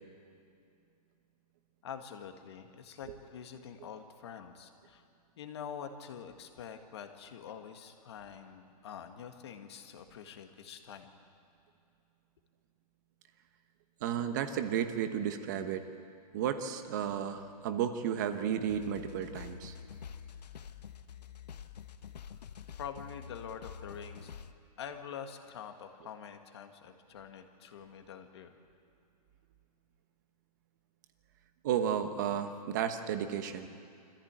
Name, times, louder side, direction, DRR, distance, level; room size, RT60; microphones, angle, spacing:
voice 1, 1.8-5.0 5.4-11.2 22.8-24.3 24.8-28.6, left 7 dB, 40° left, 6 dB, 1.7 m, -46 dB
voice 2, 14.0-15.9 16.3-19.7 31.6-33.7, right 9 dB, 30° right, 8 dB, 1.1 m, -33 dB
sound 1, 18.7-24.5, left 7 dB, 90° left, 1.1 m, -47 dB
25.0 x 15.0 x 8.9 m, 2.5 s
hypercardioid pair, 175°, 20 cm